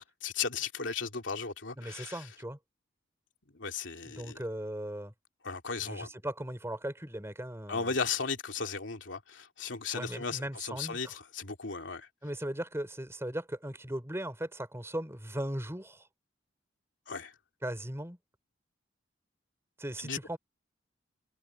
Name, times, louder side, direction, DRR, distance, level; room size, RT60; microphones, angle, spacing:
voice 1, 0.0-2.3 3.5-4.4 5.4-6.1 7.7-12.1 17.1-17.3 20.0-20.2, left 5 dB, 70° left, 3.2 m, -36 dB
voice 2, 1.8-2.6 4.2-5.1 5.8-7.9 9.9-11.1 12.2-16.1 17.6-18.2 19.8-20.4, right 1 dB, 15° right, 4.0 m, -38 dB
head